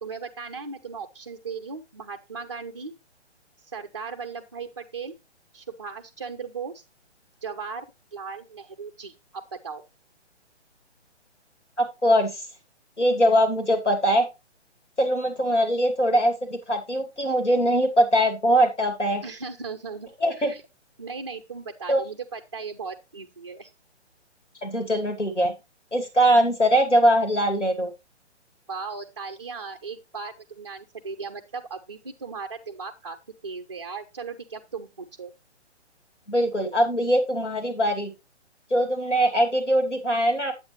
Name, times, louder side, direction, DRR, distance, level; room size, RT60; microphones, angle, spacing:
voice 1, 0.0-2.9 3.6-5.1 5.5-6.8 7.4-7.9 8.1-9.8 19.2-20.6 21.0-23.7 28.7-33.2 33.4-35.3, right 5 dB, 25° right, 5 dB, 0.4 m, -37 dB
voice 2, 11.8-12.5 13.0-14.2 15.0-19.2 20.2-20.5 21.9-22.0 24.6-25.5 25.9-27.9 36.3-38.1 38.7-40.5, equal, 85° left, 5 dB, 2.4 m, -22 dB
8.5 x 8.0 x 3.1 m, 0.24 s
figure-of-eight pair, 135°, 35 cm